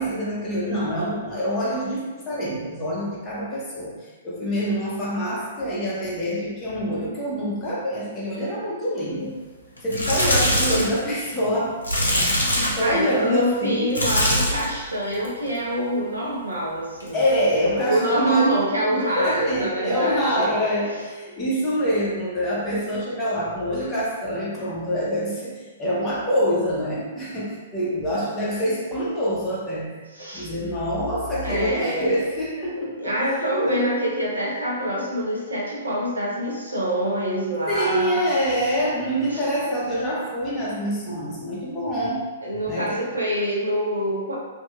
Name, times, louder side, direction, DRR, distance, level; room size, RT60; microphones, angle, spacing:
voice 1, 0.0-9.4 9.8-12.2 12.6-13.9 17.1-18.5 18.9-29.9 30.3-33.1 33.6-33.8 37.7-42.2 42.7-43.0, equal, 20° left, -7 dB, 0.6 m, -25 dB
sound 1, 9.8-11.0 11.8-12.9 13.9-14.7 15.1-15.5 17.0-17.1, equal, 80° left, 0.6 m, -22 dB
voice 2, 12.8-17.2 17.9-20.5 30.1-30.5 31.4-32.1 33.0-38.2 39.3-39.4 42.4-44.3, equal, 75° right, -5 dB, 0.8 m, -25 dB
2.7 x 2.5 x 2.3 m, 1.3 s
figure-of-eight pair, 115°, 0 cm